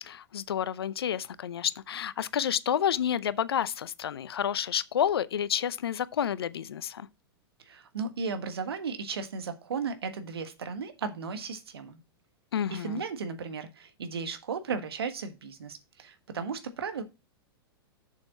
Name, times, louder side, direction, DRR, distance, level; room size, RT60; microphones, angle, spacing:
voice 1, 0.0-7.1 12.5-13.0, left 9 dB, 75° left, 0.6 m, -30 dB
voice 2, 7.6-12.0 12.7-17.0, right 5 dB, 75° right, 1.5 m, -35 dB
7.3 x 6.6 x 4.0 m
figure-of-eight pair, 100°, 13 cm